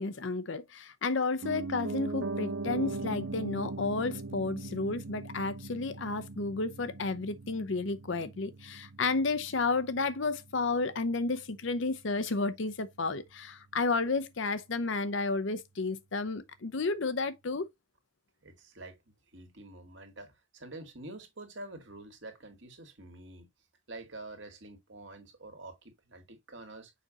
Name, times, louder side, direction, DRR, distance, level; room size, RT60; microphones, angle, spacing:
voice 1, 0.0-17.7, left 3 dB, 65° left, 0.7 m, -32 dB
Piano, 1.4-11.4 11.7-11.8, right 3 dB, 75° right, 0.9 m, -40 dB
voice 2, 18.4-19.0 19.3-23.5 23.9-26.9, right 2 dB, 60° right, 2.0 m, -47 dB
6.5 x 5.1 x 2.9 m
head